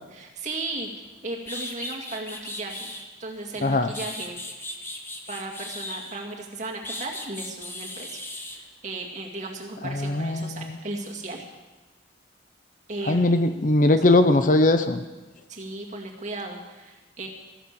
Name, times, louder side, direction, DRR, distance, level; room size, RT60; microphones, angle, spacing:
voice 1, 0.1-0.9 1.2-2.9 3.2-4.4 5.3-8.2 8.8-11.5 12.9-13.3 15.5-17.3, right 2 dB, 35° right, 0 dB, 2.1 m, -35 dB
sound 1, 1.0-1.1 1.4-3.1 3.7-6.3 6.8-8.6, left 1 dB, 10° left, 1.1 m, -37 dB
voice 2, 9.8-10.8 13.1-15.0, left 2 dB, 40° left, 9 dB, 0.7 m, -20 dB
14.5 x 11.0 x 7.0 m, 1.2 s
head